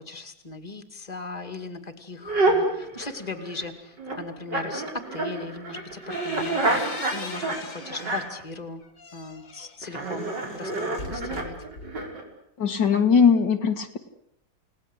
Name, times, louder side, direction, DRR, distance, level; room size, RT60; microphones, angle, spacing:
voice 1, 0.0-6.8 7.1-8.8 9.1-11.6, left 3 dB, 20° left, 7 dB, 2.5 m, -38 dB
sound 1, 2.3-3.6 4.0-8.4 9.8-12.2, right 2 dB, 70° right, 5.4 m, -28 dB
sound 2, 5.7-8.4 8.8-12.2, left 3 dB, 45° left, 2.5 m, -41 dB
voice 2, 12.6-14.0, left 6 dB, 75° left, 5 dB, 2.5 m, -20 dB
30.0 x 19.0 x 8.2 m, 0.73 s
omnidirectional pair, 1.9 m